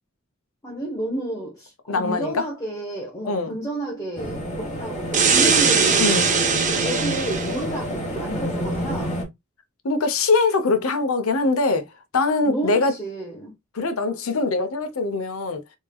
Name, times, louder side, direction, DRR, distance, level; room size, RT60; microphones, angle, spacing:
voice 1, 0.6-6.4 6.7-9.2 12.4-13.5, right 1 dB, 15° left, 0.9 m, -31 dB
voice 2, 1.9-2.4 3.2-3.6 6.0-6.4 9.8-11.9 12.1-12.9 13.7-15.6, left 3 dB, 75° left, 0.7 m, -22 dB
sound 1, 4.2-9.2, equal, 35° left, 1.2 m, -29 dB
sound 2, 5.1-7.6, right 5 dB, 35° right, 0.6 m, -20 dB
3.6 x 3.2 x 2.3 m
head